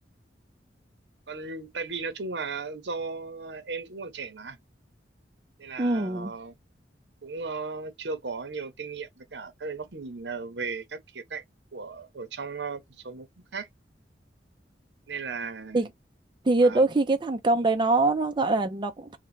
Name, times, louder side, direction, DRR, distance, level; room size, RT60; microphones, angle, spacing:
voice 1, 1.3-4.6 5.6-6.5 7.2-11.4 11.7-13.3 13.5-13.7 15.1-15.9 16.6-16.8, right 4 dB, 70° right, 0.8 m, -36 dB
voice 2, 5.8-6.3 15.7-15.9 16.4-19.2, right 2 dB, 25° right, 0.5 m, -23 dB
3.8 x 2.2 x 3.1 m
head